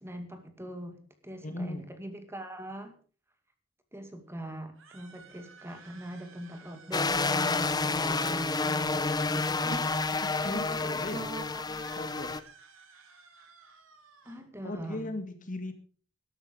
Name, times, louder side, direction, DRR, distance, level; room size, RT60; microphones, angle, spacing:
voice 1, 0.0-2.9 3.9-9.8 10.4-11.8 14.3-15.1, right 1 dB, 15° right, 7 dB, 2.2 m, -42 dB
voice 2, 1.4-1.9 9.7-9.9 10.2-11.2 12.0-12.3 14.6-15.7, left 1 dB, 40° left, 8 dB, 1.9 m, -37 dB
sound 1, 4.7-7.4 7.7-10.5 11.6-14.4, right 5 dB, 85° right, 3.5 m, -53 dB
sound 2, 6.9-12.4, left 3 dB, 20° left, 0.7 m, -29 dB
13.0 x 12.5 x 5.2 m, 0.41 s
head